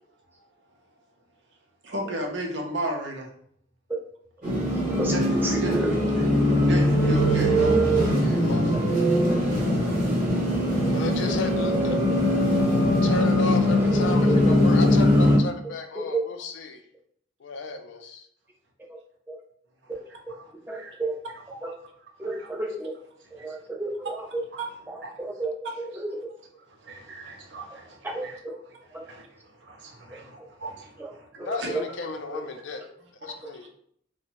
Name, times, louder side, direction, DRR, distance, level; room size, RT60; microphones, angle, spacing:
voice 1, 1.8-3.3 5.1-5.2 5.6-6.3 6.6-8.0 20.3-21.0 21.5-21.7 22.3-22.5 23.4-23.6 24.5-25.1 25.6-26.0 26.8-28.4 28.7-31.7 33.2-33.7, right 1 dB, 65° right, 1 dB, 0.6 m, -35 dB
sound 1, 4.4-15.4, equal, 40° right, 0.9 m, -21 dB
voice 2, 4.8-5.9 8.7-8.8 9.2-9.3 10.8-10.9 11.9-12.0 13.9-14.6 16.0-16.2 19.3-19.4 20.7-21.2 21.6-21.7 22.2-22.9 23.3-24.4 24.9-26.3 28.0-28.6 28.9-29.0 30.4-30.5 31.0-31.1 31.4-31.9, right 2 dB, 10° right, -1 dB, 0.4 m, -32 dB
voice 3, 8.2-9.0 10.9-12.0 13.0-16.8 17.4-18.3 31.4-32.8 33.2-33.7, left 3 dB, 70° left, 6 dB, 0.4 m, -34 dB
2.7 x 2.1 x 2.9 m, 0.66 s
head